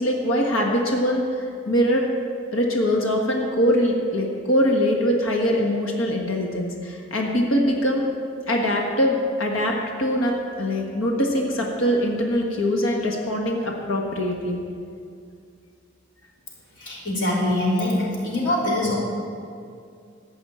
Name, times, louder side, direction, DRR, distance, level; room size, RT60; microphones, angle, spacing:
voice 1, 0.0-2.1 2.5-8.1 8.5-14.6, equal, 85° left, 0 dB, 1.4 m, -23 dB
voice 2, 16.8-19.0, left 1 dB, 65° left, -5 dB, 3.4 m, -23 dB
14.5 x 5.7 x 8.7 m, 2.4 s
head